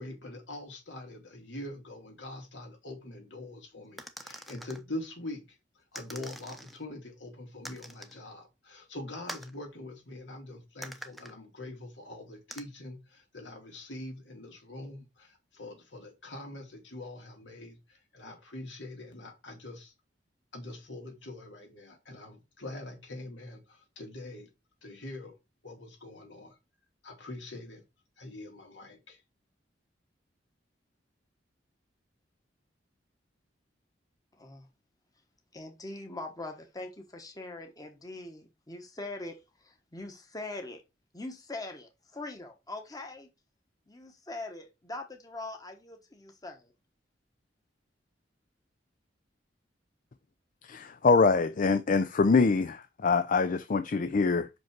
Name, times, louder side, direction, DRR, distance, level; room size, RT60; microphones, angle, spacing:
voice 1, 0.0-5.5 5.7-19.9 20.5-24.5 24.8-25.3 25.6-26.6 27.0-27.8 28.2-29.2, left 1 dB, 80° left, 2.7 m, -44 dB
sound 1, 4.0-4.8 5.9-6.8 7.6-8.2 9.3-9.5 10.8-11.3 12.5-12.6, equal, ahead, 0.8 m, -44 dB
voice 2, 34.3-34.7 35.5-40.8 41.1-43.3 43.9-46.7, left 2 dB, 20° left, 1.2 m, -42 dB
voice 3, 50.6-54.5, left 4 dB, 45° left, 0.5 m, -24 dB
5.8 x 5.3 x 4.5 m
head